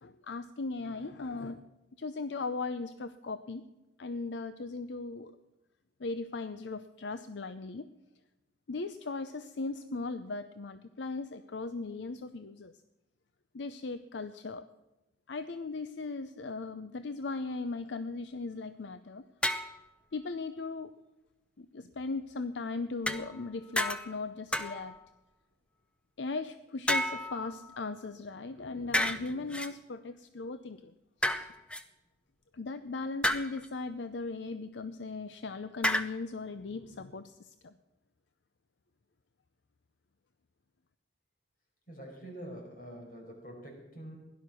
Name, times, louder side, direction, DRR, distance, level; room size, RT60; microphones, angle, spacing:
voice 1, 0.0-1.6 2.0-3.6 4.0-5.3 6.0-7.9 8.7-12.7 13.5-14.7 15.3-19.2 20.1-20.9 21.6-24.9 26.2-30.9 31.2-31.5 32.5-37.7, left 3 dB, 75° left, 11 dB, 0.6 m, -38 dB
sound 1, 19.4-19.8 23.1-23.5 23.8-24.2 24.5-25.0 26.9-27.9 28.9-29.7 31.2-31.8 33.2-33.7 35.8-36.1, left 1 dB, 5° left, 0.7 m, -31 dB
voice 2, 41.9-44.2, equal, 50° left, 0 dB, 5.3 m, -45 dB
16.5 x 11.5 x 6.2 m, 1.0 s
head